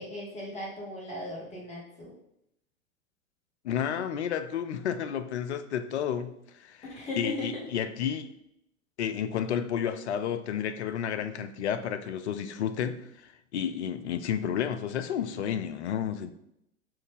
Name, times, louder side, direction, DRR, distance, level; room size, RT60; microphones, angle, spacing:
voice 1, 0.0-2.1 6.8-7.6, left 1 dB, 15° left, -4 dB, 1.4 m, -37 dB
voice 2, 3.6-6.8 7.2-8.3 9.0-16.3, left 8 dB, 55° left, 11 dB, 0.4 m, -31 dB
5.3 x 2.6 x 3.5 m, 0.78 s
figure-of-eight pair, 95°, 42 cm